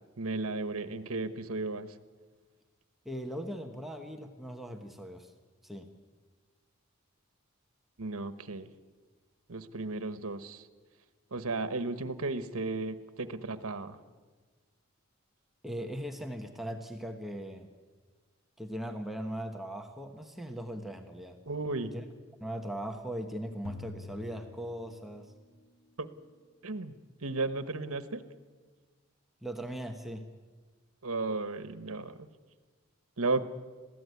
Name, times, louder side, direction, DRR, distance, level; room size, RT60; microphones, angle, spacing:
voice 1, 0.2-2.0 8.0-8.7 9.5-10.7 11.3-14.0 21.5-21.9 26.0-26.1 26.6-26.9 27.2-28.2 31.0-32.3 33.2-33.5, right 3 dB, 85° right, 11 dB, 1.2 m, -34 dB
voice 2, 3.0-5.3 5.6-5.9 15.6-17.7 18.6-21.4 21.9-22.0 22.4-25.3 29.4-30.2, equal, ahead, 4 dB, 1.2 m, -39 dB
sound 1, 23.6-25.4, left 3 dB, 70° left, 1.7 m, -46 dB
21.5 x 15.5 x 9.5 m, 1.4 s
head